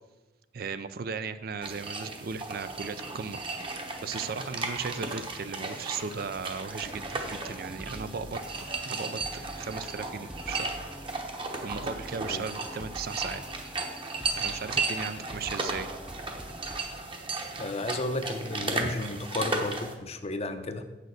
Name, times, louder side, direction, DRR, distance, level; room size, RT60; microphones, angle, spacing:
voice 1, 0.5-8.4 8.9-9.2 9.5-10.7 11.6-13.4 14.4-15.9 18.8-18.9, right 5 dB, 55° right, 12 dB, 0.5 m, -36 dB
sound 1, 1.6-19.9, right 3 dB, 30° right, 1.0 m, -35 dB
sound 2, 6.8-16.8, equal, 5° right, 0.6 m, -46 dB
voice 2, 17.6-20.8, left 2 dB, 35° left, 8 dB, 0.7 m, -33 dB
8.0 x 6.6 x 6.4 m, 1.2 s
head